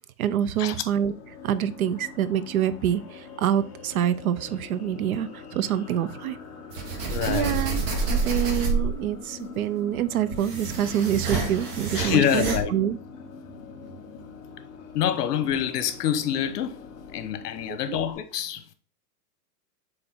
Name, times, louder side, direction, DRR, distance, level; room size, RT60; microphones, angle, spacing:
voice 1, 0.2-1.1 1.4-6.4 7.3-7.8 8.1-13.0 17.7-18.0, right 10 dB, 60° right, 0.6 m, -26 dB
sound 1, 0.8-18.1, left 5 dB, 25° left, 1.0 m, -43 dB
sound 2, 6.7-9.1 9.9-12.6, right 3 dB, 30° right, 1.1 m, -28 dB
voice 2, 7.1-7.6 11.9-12.7 14.9-16.8 17.1-18.7, left 9 dB, 75° left, 1.0 m, -26 dB
7.8 x 3.5 x 3.6 m
supercardioid pair, 170°, 48 cm